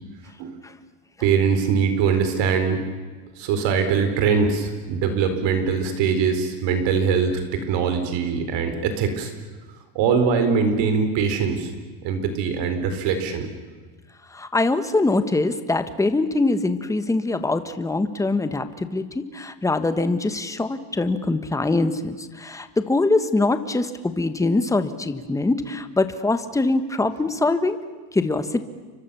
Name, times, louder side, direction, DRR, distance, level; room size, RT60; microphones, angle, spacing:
voice 1, 1.2-2.8 3.4-9.3 9.9-11.7 12.0-13.5, right 6 dB, 60° right, 8 dB, 4.5 m, -22 dB
voice 2, 14.3-27.8 28.1-28.7, left 2 dB, 5° left, 10 dB, 1.4 m, -23 dB
29.5 x 24.5 x 7.0 m, 1.4 s
supercardioid pair, 140°, 49 cm